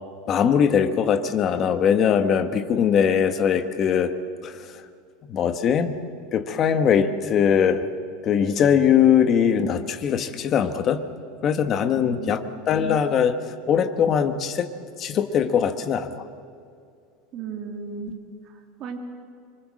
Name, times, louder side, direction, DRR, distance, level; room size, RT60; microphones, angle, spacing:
voice 1, 0.3-4.1 4.4-4.6 5.3-5.9 6.3-7.8 8.2-11.0 11.4-13.3 13.7-14.7 15.0-16.2, left 8 dB, 25° left, 8 dB, 1.3 m, -21 dB
voice 2, 11.8-12.4 17.3-18.2 18.8-19.0, right 6 dB, 30° right, 2 dB, 2.3 m, -35 dB
25.5 x 23.5 x 7.6 m, 2.4 s
supercardioid pair, 175°, 0 cm